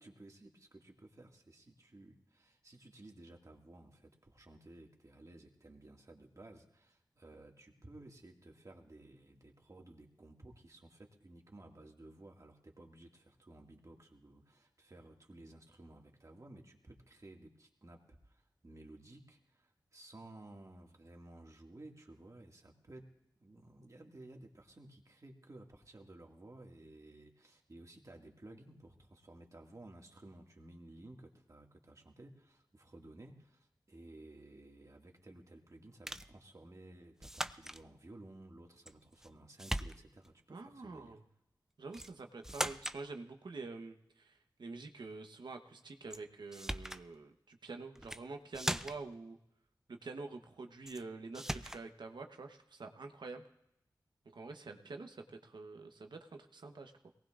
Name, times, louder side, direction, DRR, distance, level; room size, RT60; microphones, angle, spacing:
voice 1, 0.0-23.1 23.4-41.2, right 2 dB, 45° right, 1 dB, 2.0 m, -56 dB
sound 1, 36.1-36.3 37.2-37.8 38.9-39.3 39.6-40.3 41.9-42.1 42.4-43.0 46.1-46.2 46.5-47.0 47.9-48.2 48.5-49.1 50.9-51.0 51.3-51.8, right 1 dB, 5° right, 0.5 m, -39 dB
voice 2, 40.5-41.2 41.8-49.4 49.9-53.5 54.3-57.1, right 3 dB, 85° right, 4 dB, 1.1 m, -47 dB
22.5 x 18.5 x 2.5 m, 0.83 s
wide cardioid pair, 60°, 7 cm